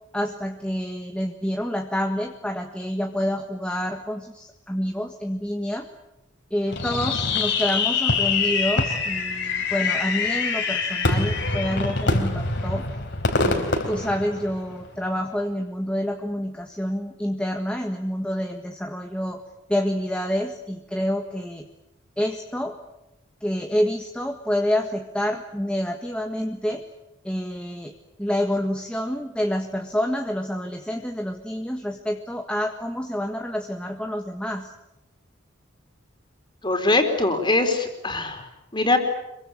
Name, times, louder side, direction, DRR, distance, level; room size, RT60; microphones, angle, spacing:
voice 1, 0.1-5.9 6.5-12.9 13.4-19.4 19.7-21.6 22.2-22.8 23.4-26.8 27.2-27.9 28.2-34.7, equal, 5° left, 3 dB, 1.6 m, -28 dB
Fireworks, 6.7-14.9, left 3 dB, 60° left, 4.0 m, -24 dB
voice 2, 36.6-38.4 38.7-39.0, left 2 dB, 25° left, 5 dB, 4.3 m, -22 dB
26.5 x 23.5 x 8.7 m, 0.91 s
head